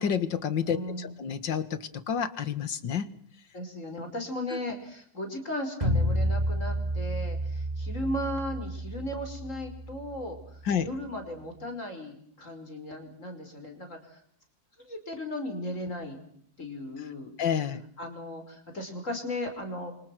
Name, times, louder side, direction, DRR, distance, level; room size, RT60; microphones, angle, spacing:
voice 1, 0.0-3.1 10.7-10.9 17.4-17.8, left 7 dB, 80° left, 13 dB, 2.3 m, -29 dB
voice 2, 0.7-1.2 3.5-14.2 14.8-16.2 16.6-17.3 18.0-19.9, left 1 dB, 40° left, 5 dB, 5.8 m, -36 dB
sound 1, 5.8-10.8, equal, 20° right, 3.7 m, -31 dB
29.5 x 26.0 x 6.2 m, 0.63 s
omnidirectional pair, 2.0 m